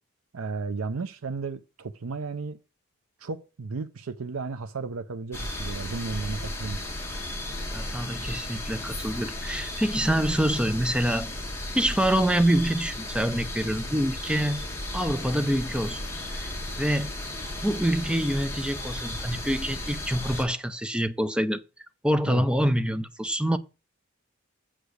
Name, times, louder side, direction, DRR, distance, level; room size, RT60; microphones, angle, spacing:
voice 1, 0.3-2.6 3.2-6.8 22.3-22.4, right 4 dB, 85° right, 0.6 m, -34 dB
sound 1, 5.3-20.4, left 1 dB, 15° left, 2.1 m, -35 dB
voice 2, 7.7-11.3 11.7-14.6 14.9-16.0 16.3-16.5 16.8-17.1 17.6-21.6 22.0-23.6, equal, 5° right, 0.6 m, -26 dB
7.5 x 5.0 x 6.4 m
head